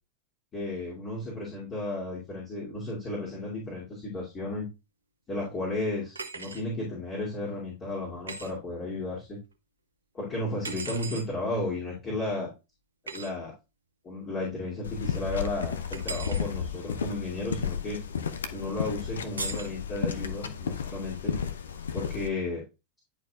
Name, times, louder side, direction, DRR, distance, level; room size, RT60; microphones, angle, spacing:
voice 1, 0.5-4.7 5.3-9.4 10.1-12.5 13.1-13.5 14.0-18.0 18.5-21.3 21.9-22.6, left 2 dB, 25° left, -5 dB, 2.5 m, -33 dB
sound 1, 6.2-6.6 8.3-8.5 10.6-11.3 13.1-13.3 15.9-16.5 19.4-19.7, right 4 dB, 75° right, 0.8 m, -37 dB
sound 2, 14.8-22.3, left 7 dB, 65° left, 0.7 m, -33 dB
10.5 x 4.6 x 2.4 m, 0.26 s
figure-of-eight pair, 90°, 0 cm